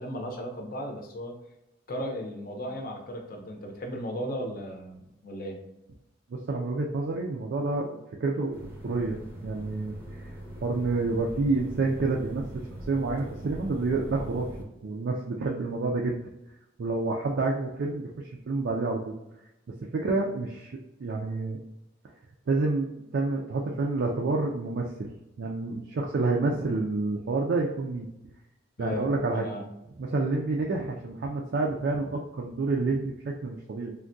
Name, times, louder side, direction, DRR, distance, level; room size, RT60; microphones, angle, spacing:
voice 1, 0.0-1.4 1.9-5.6 28.8-29.6, equal, 50° left, 2 dB, 0.6 m, -36 dB
voice 2, 6.3-9.2 9.4-10.3 10.6-12.5 12.9-14.5 14.8-16.3 16.8-19.1 19.7-21.6 22.5-28.1 28.8-29.5 30.0-33.9, right 3 dB, 60° right, -1 dB, 0.4 m, -29 dB
sound 1, 8.5-14.6, right 1 dB, 10° right, 0.6 m, -41 dB
3.4 x 2.2 x 2.6 m, 0.89 s
head